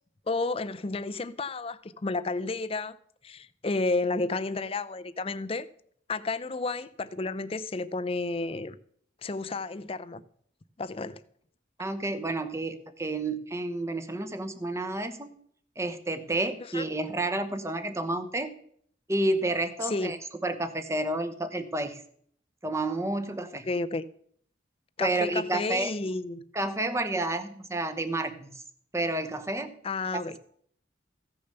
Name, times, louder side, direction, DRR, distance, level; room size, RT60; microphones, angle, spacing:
voice 1, 0.3-3.0 3.2-5.7 6.1-8.8 9.2-10.2 10.8-11.2 16.7-16.8 19.8-20.1 23.7-24.0 25.0-26.4 29.8-30.4, left 3 dB, 30° left, 0.5 m, -31 dB
voice 2, 11.8-15.4 15.8-18.5 19.1-20.2 20.4-22.0 22.6-23.7 25.0-25.9 26.5-28.5 28.9-29.7 30.1-30.2, right 2 dB, 15° right, 0.9 m, -30 dB
15.0 x 6.8 x 6.7 m
head